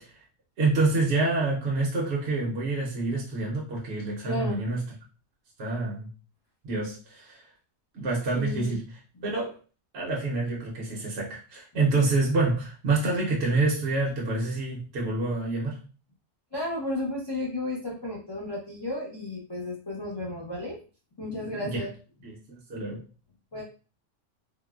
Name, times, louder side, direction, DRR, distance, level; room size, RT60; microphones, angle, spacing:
voice 1, 0.6-4.8 5.6-6.1 6.6-7.4 7.9-8.8 9.2-9.6 9.9-15.8 21.6-21.8 22.2-23.0, right 3 dB, 60° right, -3 dB, 0.9 m, -27 dB
voice 2, 4.2-4.6 8.4-8.7 16.5-20.8 21.2-21.9 23.5-23.6, left 1 dB, 30° left, -5 dB, 0.4 m, -33 dB
3.6 x 2.1 x 2.3 m, 0.36 s
omnidirectional pair, 1.3 m